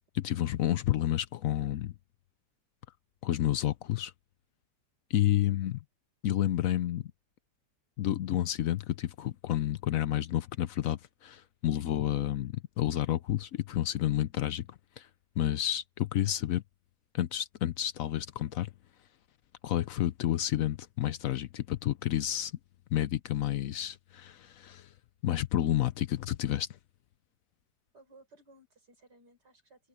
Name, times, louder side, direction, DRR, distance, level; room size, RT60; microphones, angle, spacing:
voice 1, 0.1-1.9 3.2-4.1 5.1-5.7 6.2-7.0 8.0-14.7 15.0-15.1 15.4-16.6 17.1-18.7 19.6-22.5 22.9-24.9 25.2-26.7, left 13 dB, 65° left, 0.9 m, -30 dB
voice 2, 5.3-5.6 27.9-29.9, right 2 dB, 75° right, 6.2 m, -59 dB
open air
omnidirectional pair, 1.8 m